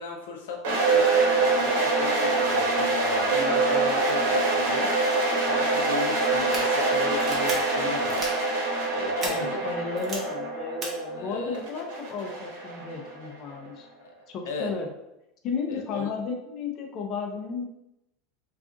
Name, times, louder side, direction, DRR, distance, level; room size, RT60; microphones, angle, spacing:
voice 1, 0.0-8.3 8.9-9.6 11.1-11.6 14.0-14.1 14.4-14.7 15.7-16.1, left 4 dB, 90° left, 2 dB, 0.5 m, -36 dB
sound 1, 0.6-13.5, right 3 dB, 85° right, 0.9 m, -25 dB
sound 2, 6.3-6.6 7.2-7.5 8.1-8.3 9.2-9.3 10.0-10.2 10.8-10.9, right 3 dB, 30° right, 0.7 m, -34 dB
voice 2, 9.2-13.9 14.3-14.9 15.4-17.7, left 5 dB, 40° left, 2 dB, 0.5 m, -33 dB
2.4 x 2.4 x 3.7 m, 0.86 s
supercardioid pair, 145°, 0 cm